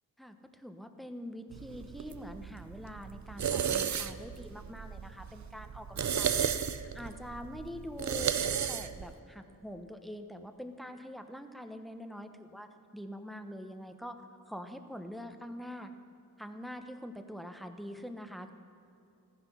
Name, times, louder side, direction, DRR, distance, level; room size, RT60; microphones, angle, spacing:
voice 1, 0.2-15.9 16.4-18.5, equal, ahead, 7 dB, 1.1 m, -44 dB
sound 1, 1.5-9.1, right 8 dB, 50° right, 0.6 m, -34 dB
14.5 x 10.0 x 5.7 m, 2.7 s
cardioid pair, 60°, 36 cm